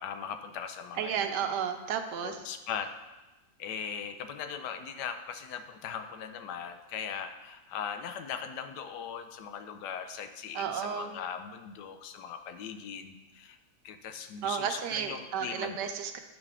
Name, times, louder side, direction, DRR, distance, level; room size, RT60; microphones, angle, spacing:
voice 1, 0.0-1.1 1.4-1.5 2.2-2.9 3.6-13.6 13.8-15.9, left 7 dB, 80° left, 8 dB, 1.2 m, -39 dB
voice 2, 1.0-2.4 10.5-11.1 14.4-16.2, right 8 dB, 85° right, 7 dB, 1.3 m, -32 dB
9.6 x 4.9 x 3.6 m, 1.1 s
omnidirectional pair, 1.8 m